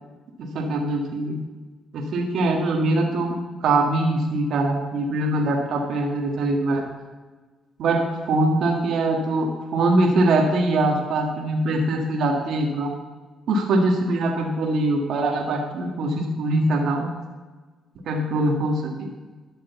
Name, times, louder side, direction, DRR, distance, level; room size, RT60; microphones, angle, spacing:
voice 1, 0.4-1.4 1.9-3.3 3.6-6.8 7.8-12.9 13.5-17.1 18.1-19.1, right 2 dB, 70° right, 1 dB, 1.7 m, -22 dB
12.0 x 6.6 x 7.0 m, 1.3 s
cardioid pair, 90°, 0 cm